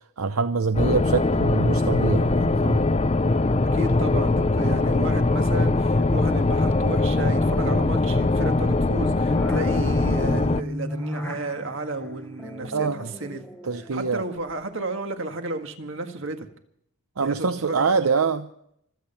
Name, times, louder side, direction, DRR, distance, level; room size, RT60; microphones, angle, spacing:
voice 1, 0.2-2.8 12.6-13.1 13.6-14.2 17.2-18.5, right 4 dB, 80° right, 0.7 m, -25 dB
sound 1, 0.7-10.6, left 2 dB, 30° left, 0.5 m, -21 dB
voice 2, 3.7-13.5 13.7-16.5 17.2-17.9, right 2 dB, 60° right, 1.8 m, -33 dB
cd load minisamp, 7.7-14.8, equal, 5° left, 1.0 m, -38 dB
25.5 x 8.9 x 5.8 m
head